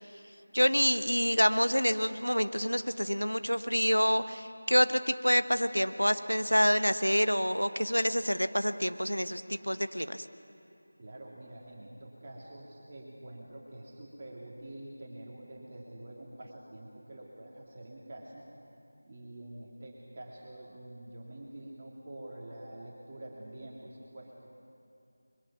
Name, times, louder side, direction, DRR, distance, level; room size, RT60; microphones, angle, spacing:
voice 1, 0.5-10.2, equal, 90° left, 11 dB, 1.0 m, -27 dB
voice 2, 11.0-18.4 19.1-24.4, right 1 dB, 30° right, -3 dB, 2.1 m, -47 dB
22.5 x 22.0 x 5.9 m, 2.8 s
figure-of-eight pair, 170°, 0 cm